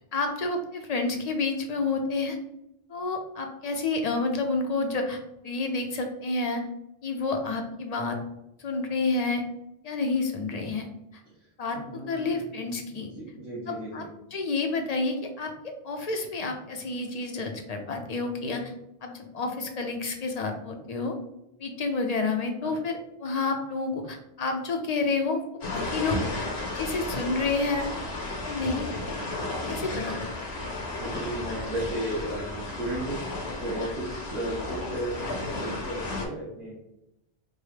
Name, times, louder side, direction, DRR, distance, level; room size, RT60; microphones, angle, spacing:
voice 1, 0.1-2.4 2.9-6.6 7.0-8.2 8.6-9.4 9.8-10.9 11.6-13.1 13.7-14.0 14.3-18.7 19.0-21.2 21.6-26.2 26.7-27.9 28.4-28.9 29.4-30.1 30.6-30.7, left 3 dB, 55° left, 4 dB, 0.4 m, -29 dB
voice 2, 11.3-12.5 12.8-14.1 22.6-22.8 31.0-36.8, right 1 dB, 70° right, -8 dB, 1.5 m, -35 dB
sound 1, 25.6-36.3, left 2 dB, 80° left, 1.2 m, -33 dB
4.5 x 2.0 x 3.2 m, 0.88 s
omnidirectional pair, 1.1 m